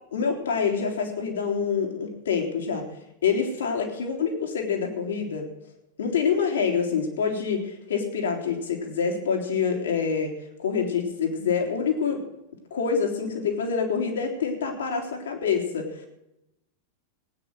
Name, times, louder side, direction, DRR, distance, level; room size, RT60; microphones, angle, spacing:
voice 1, 0.1-2.9 3.2-5.4 6.0-12.2 12.7-16.1, left 6 dB, 65° left, 3 dB, 3.4 m, -26 dB
19.0 x 9.5 x 6.4 m, 0.86 s
figure-of-eight pair, 90°, 0 cm